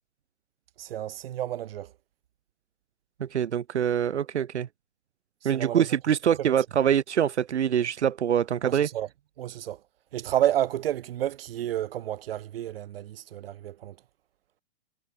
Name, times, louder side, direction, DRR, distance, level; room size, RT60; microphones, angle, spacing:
voice 1, 0.8-1.9 5.4-5.9 6.4-6.5 8.6-9.1 9.4-9.8 10.1-14.0, right 12 dB, 60° right, 1.1 m, -30 dB
voice 2, 3.2-4.7 5.4-8.9, right 9 dB, 90° right, 0.6 m, -24 dB
hypercardioid pair, 125°, 33 cm